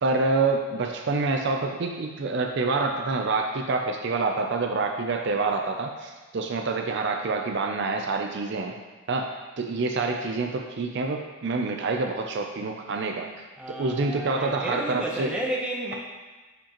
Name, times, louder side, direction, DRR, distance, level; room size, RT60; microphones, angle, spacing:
voice 1, 0.0-8.8 9.1-9.3 9.6-13.3 13.7-15.4, right 3 dB, 50° right, 3 dB, 0.4 m, -27 dB
voice 2, 13.6-15.9, right 1 dB, 5° right, -3 dB, 0.8 m, -32 dB
8.7 x 5.1 x 2.9 m, 1.3 s
head